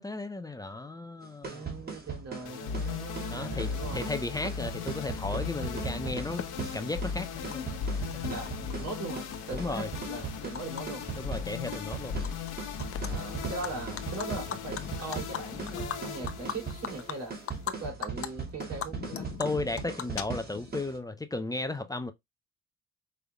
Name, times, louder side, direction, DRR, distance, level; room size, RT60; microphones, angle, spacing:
voice 1, 0.0-1.7 3.3-6.4 6.7-7.7 8.1-8.4 9.5-9.9 11.2-12.2 19.4-22.1, left 2 dB, 10° left, 0.6 m, -35 dB
sound 1, 1.2-21.0, right 5 dB, 30° right, 2.1 m, -39 dB
voice 2, 1.4-4.0 8.3-11.1 13.0-17.3 17.6-19.3, right 3 dB, 55° right, 3.1 m, -40 dB
sound 2, 2.4-17.8, left 6 dB, 85° left, 1.3 m, -37 dB
Animal, 6.4-6.5 7.5-7.6 7.9-8.7 9.1-10.8 11.1-11.4 11.7-12.5 12.8-13.1 13.4-17.7 18.0-18.3 18.6-20.7, left 9 dB, 50° left, 0.7 m, -38 dB
5.3 x 3.5 x 2.3 m
cardioid pair, 90°, 30 cm